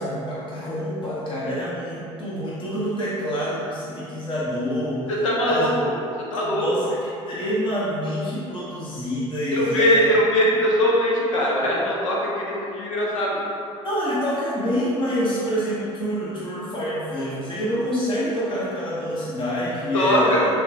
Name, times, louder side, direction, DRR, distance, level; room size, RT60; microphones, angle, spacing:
voice 1, 0.0-5.0 5.4-5.7 6.4-6.9 7.3-10.1 13.8-20.5, equal, 30° left, -8 dB, 1.1 m, -27 dB
voice 2, 5.1-5.9 6.3-6.9 9.5-13.4 19.9-20.4, equal, 80° left, -4 dB, 0.8 m, -21 dB
6.8 x 2.4 x 2.6 m, 2.6 s
hypercardioid pair, 60°, 16 cm